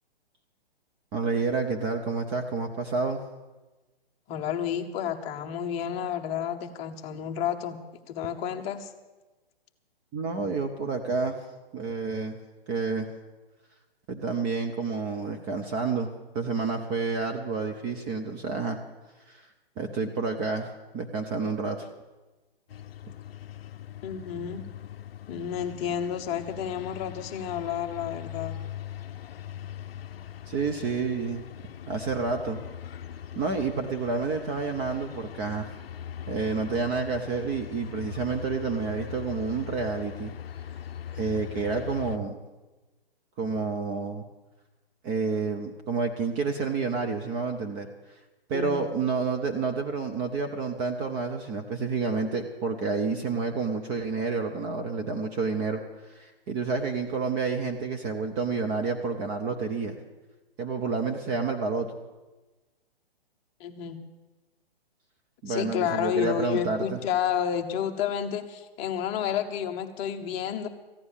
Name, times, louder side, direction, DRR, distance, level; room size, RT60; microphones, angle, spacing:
voice 1, 1.1-3.2 10.1-11.4 11.7-12.4 12.7-13.1 14.1-16.1 16.3-18.8 19.3-19.5 19.8-21.9 30.5-31.4 31.9-32.6 33.4-35.7 36.3-40.3 41.1-42.4 43.4-44.2 45.0-47.9 48.5-60.0 60.6-61.9 65.4-67.0, right 4 dB, 20° right, 4 dB, 0.7 m, -29 dB
voice 2, 4.3-7.8 8.1-8.9 24.0-24.6 25.3-28.6 48.5-48.9 63.6-64.0 65.5-70.7, left 8 dB, 20° left, 5 dB, 0.9 m, -30 dB
sound 1, 22.7-42.2, left 10 dB, 75° left, 0.6 m, -41 dB
14.5 x 9.6 x 7.1 m, 1.2 s
hypercardioid pair, 135°, 30 cm